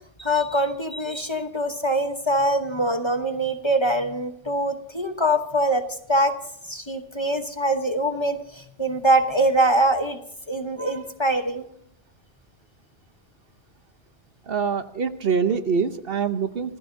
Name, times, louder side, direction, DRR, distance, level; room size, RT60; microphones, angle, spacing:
voice 1, 0.2-6.4 6.6-10.2 10.5-11.6, right 1 dB, 25° left, 6 dB, 1.0 m, -23 dB
voice 2, 14.5-16.8, right 6 dB, 55° right, 9 dB, 1.1 m, -24 dB
27.0 x 14.5 x 2.7 m, 0.70 s
omnidirectional pair, 1.2 m